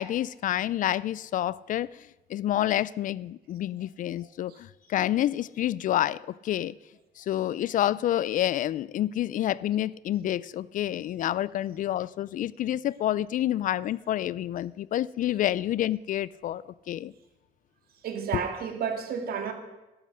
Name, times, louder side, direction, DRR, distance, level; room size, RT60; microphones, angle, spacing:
voice 1, 0.0-6.7 7.2-17.1 18.3-18.5, left 12 dB, 50° left, 21 dB, 0.4 m, -28 dB
voice 2, 18.0-19.5, right 7 dB, 65° right, 6 dB, 2.3 m, -31 dB
13.0 x 12.0 x 6.5 m, 1.0 s
cardioid pair, 110°, 17 cm